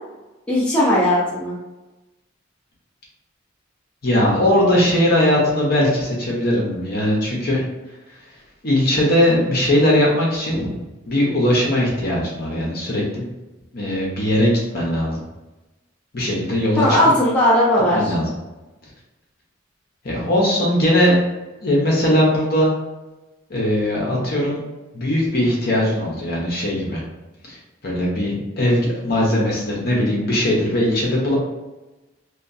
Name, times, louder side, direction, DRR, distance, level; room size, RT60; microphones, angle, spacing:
voice 1, 0.5-1.6 10.5-10.8 16.8-18.1, left 1 dB, 5° left, -8 dB, 0.6 m, -18 dB
voice 2, 4.0-7.6 8.6-10.6 11.1-13.2 13.7-15.2 16.1-17.0 17.9-18.2 20.0-21.2 21.6-22.7 23.5-24.6 24.9-27.0 27.5-27.6 27.8-31.3, left 1 dB, 50° left, -4 dB, 0.7 m, -19 dB
2.9 x 2.2 x 2.6 m, 1.1 s
head